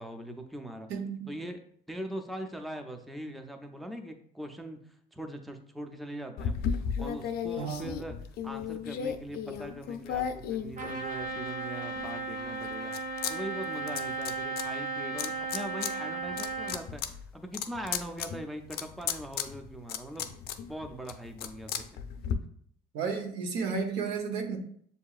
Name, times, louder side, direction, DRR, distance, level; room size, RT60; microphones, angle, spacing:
voice 1, 0.0-0.9 1.3-1.6 1.9-8.1 8.4-12.9 13.3-22.0, right 1 dB, ahead, 5 dB, 0.4 m, -41 dB
voice 2, 0.9-1.3 7.6-7.9 22.9-24.6, right 5 dB, 85° right, 4 dB, 0.8 m, -32 dB
sound 1, 6.4-11.4 11.9-13.3 13.6-14.6 15.2-15.9 16.3-22.3, left 8 dB, 70° left, 0.5 m, -35 dB
Trumpet, 10.8-16.8, right 2 dB, 50° right, 0.9 m, -35 dB
7.1 x 2.7 x 2.4 m, 0.62 s
cardioid pair, 110°, 17 cm